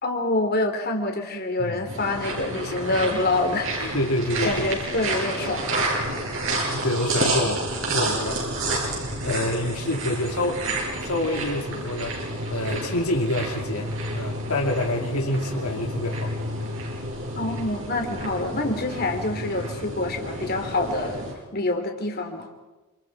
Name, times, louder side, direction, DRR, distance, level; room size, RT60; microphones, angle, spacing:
voice 1, 0.0-3.9 4.4-5.7 17.4-21.3 21.5-22.5, left 2 dB, 45° left, 4 dB, 3.2 m, -26 dB
sound 1, 1.9-21.3, right 1 dB, 60° right, 7.7 m, -30 dB
voice 2, 3.9-4.7 6.7-10.7 11.0-12.2 12.5-16.3, left 1 dB, 80° left, 2 dB, 2.4 m, -27 dB
29.0 x 27.5 x 4.8 m, 1.1 s
head